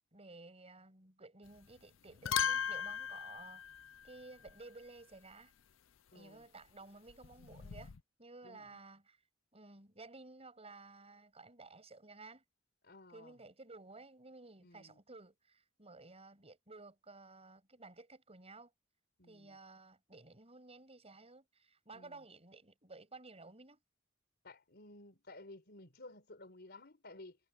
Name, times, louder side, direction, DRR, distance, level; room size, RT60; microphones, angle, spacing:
voice 1, 0.1-3.6 4.0-5.5 6.1-7.9 8.2-9.2 9.5-12.4 13.1-18.7 19.2-23.8, right 3 dB, 30° right, 7.7 m, -55 dB
sound 1, 1.5-1.8 2.1-4.6 7.1-8.0, left 8 dB, 75° left, 0.6 m, -38 dB
voice 2, 6.1-6.4 8.4-8.8 12.8-13.3 14.6-15.0 19.2-19.6 21.9-22.2 24.4-27.4, left 2 dB, 55° left, 4.6 m, -55 dB
head